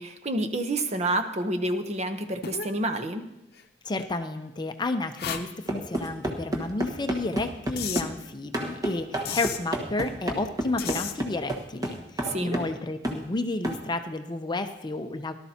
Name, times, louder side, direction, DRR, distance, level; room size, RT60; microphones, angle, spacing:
voice 1, 0.0-3.3 12.2-12.6, right 1 dB, 40° right, 7 dB, 0.8 m, -29 dB
sound 1, 2.4-2.7 3.5-3.6 5.2-5.5 7.8-8.1 9.3-9.6 10.8-11.1, left 8 dB, 60° left, 0.7 m, -32 dB
voice 2, 3.8-15.3, left 2 dB, 25° left, 8 dB, 0.5 m, -31 dB
sound 2, 5.7-8.1 8.5-12.8 13.0-13.2 13.6-13.8, right 1 dB, 20° right, 1.3 m, -30 dB
18.0 x 12.5 x 2.8 m, 0.85 s
head